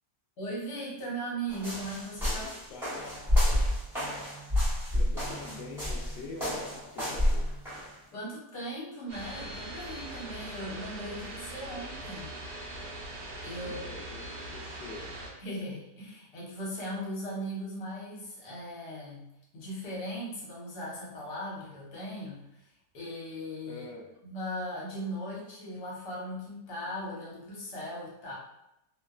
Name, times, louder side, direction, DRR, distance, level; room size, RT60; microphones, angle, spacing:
voice 1, 0.4-2.5 8.1-12.3 13.4-13.8 15.4-19.3 19.5-23.9 24.2-28.3, equal, 70° left, -5 dB, 1.4 m, -38 dB
sound 1, 1.5-7.9, left 1 dB, ahead, 0.9 m, -29 dB
voice 2, 2.2-3.6 4.9-7.5 13.6-15.2 23.7-24.1, left 3 dB, 85° left, -2 dB, 0.6 m, -45 dB
sound 2, 9.1-15.3, right 1 dB, 65° right, 0.6 m, -41 dB
2.9 x 2.2 x 2.3 m, 0.86 s
omnidirectional pair, 1.9 m